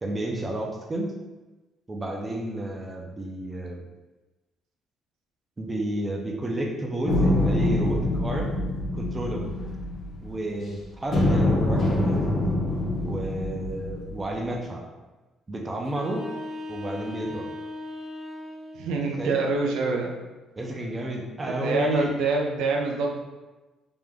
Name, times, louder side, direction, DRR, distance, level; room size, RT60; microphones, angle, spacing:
voice 1, 0.0-1.1 1.9-3.8 5.6-8.5 8.9-9.5 10.2-12.2 13.0-14.8 15.5-16.2 16.7-17.5 19.2-19.4 20.6-22.1, right 1 dB, 15° right, 0 dB, 0.5 m, -31 dB
sound 1, 7.0-10.6 11.1-14.5, left 1 dB, 35° left, 0.7 m, -25 dB
sound 2, 15.9-18.9, left 1 dB, 40° right, 1.0 m, -37 dB
voice 2, 18.7-20.1 21.4-23.2, right 3 dB, 85° right, 1 dB, 0.6 m, -26 dB
3.5 x 2.8 x 3.5 m, 1.2 s
cardioid pair, 160°, 0 cm